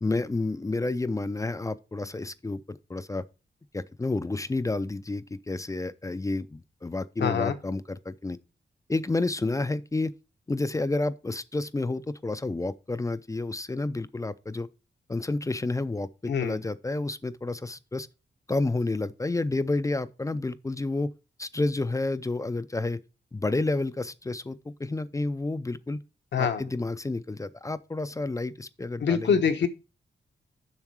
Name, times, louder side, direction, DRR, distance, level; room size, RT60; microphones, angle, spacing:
voice 1, 0.0-3.3 3.7-8.4 8.9-10.1 10.5-14.7 15.1-18.1 18.5-21.1 21.4-23.0 23.3-26.0 26.4-29.4, left 2 dB, 20° left, 0.4 m, -30 dB
voice 2, 7.2-7.5 16.3-16.6 26.3-26.6 29.0-29.7, left 6 dB, 80° left, 1.1 m, -24 dB
7.2 x 6.5 x 4.7 m
wide cardioid pair, 115°, 18 cm